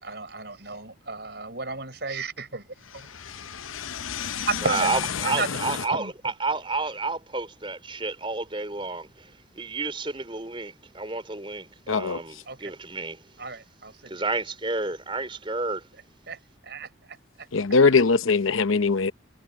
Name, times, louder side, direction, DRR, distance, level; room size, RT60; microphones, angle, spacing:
voice 1, 0.0-3.1 4.5-4.9 5.2-6.1 12.5-12.7 13.4-14.0 16.3-17.5, right 3 dB, 55° right, 5.4 m, -33 dB
voice 2, 3.4-4.5 11.9-12.2 17.5-19.1, left 4 dB, 85° left, 0.9 m, -22 dB
voice 3, 4.6-13.3 14.1-15.9, right 3 dB, 25° right, 3.9 m, -31 dB
head